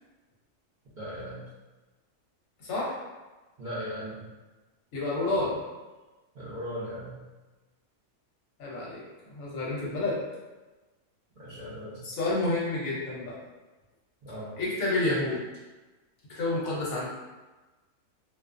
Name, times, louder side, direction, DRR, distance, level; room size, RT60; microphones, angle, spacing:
voice 1, 1.0-1.4 3.6-4.1 6.3-7.2 11.4-12.1 14.2-14.5, equal, 45° right, -12 dB, 0.6 m, -37 dB
voice 2, 2.6-2.9 4.9-5.6 8.6-10.2 12.0-13.4 14.5-15.4 16.3-17.1, left 2 dB, 65° left, -5 dB, 1.0 m, -29 dB
2.6 x 2.3 x 2.5 m, 1.2 s
omnidirectional pair, 1.6 m